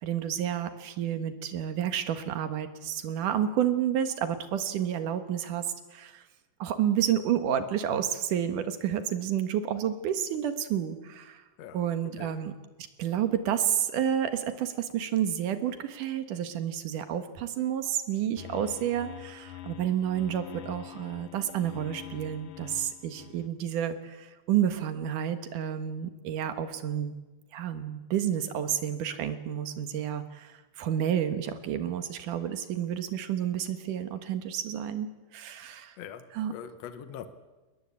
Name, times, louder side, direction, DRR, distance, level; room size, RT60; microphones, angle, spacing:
voice 1, 0.0-5.7 5.9-6.2 6.6-11.4 11.7-12.5 13.0-27.1 27.5-35.1 35.3-35.9 36.3-36.5, right 10 dB, 75° right, 10 dB, 2.9 m, -30 dB
voice 2, 11.6-12.4 36.0-37.3, left 8 dB, 60° left, 10 dB, 2.2 m, -43 dB
sound 1, 18.4-23.5, left 14 dB, 90° left, 2.6 m, -45 dB
22.0 x 20.0 x 8.6 m, 1.2 s
omnidirectional pair, 3.8 m